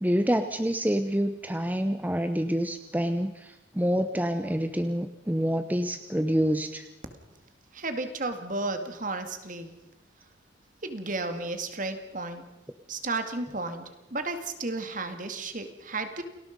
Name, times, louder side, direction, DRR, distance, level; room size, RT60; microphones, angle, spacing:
voice 1, 0.0-6.8, equal, 10° right, 9 dB, 0.8 m, -27 dB
voice 2, 7.7-9.7 10.8-12.4 12.9-16.2, right 3 dB, 45° right, 8 dB, 2.3 m, -33 dB
29.0 x 19.5 x 5.4 m, 0.95 s
head